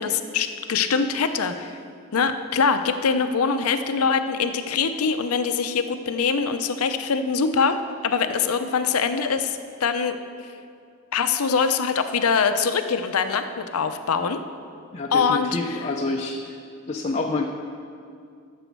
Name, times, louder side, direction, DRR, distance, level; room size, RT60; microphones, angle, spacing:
voice 1, 0.0-1.8 2.1-7.8 8.0-10.2 11.1-14.4 15.1-15.8, left 5 dB, 85° left, 9 dB, 0.6 m, -23 dB
voice 2, 14.9-16.4 16.9-17.5, left 3 dB, 30° left, 1 dB, 0.5 m, -27 dB
12.0 x 7.1 x 4.6 m, 2.4 s
head